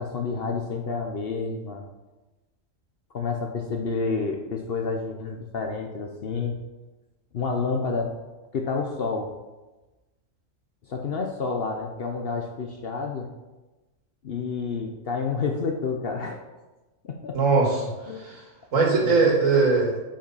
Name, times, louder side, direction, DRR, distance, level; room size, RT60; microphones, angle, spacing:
voice 1, 0.0-1.8 3.1-6.5 7.3-8.1 8.5-9.3 10.9-13.3 14.2-16.4 17.0-17.4 18.1-18.2 19.0-19.4, left 4 dB, 55° left, 3 dB, 0.8 m, -29 dB
voice 2, 17.3-17.9 18.2-18.4 18.7-20.0, right 4 dB, 75° right, -2 dB, 2.2 m, -20 dB
7.3 x 4.9 x 5.5 m, 1.1 s
omnidirectional pair, 1.4 m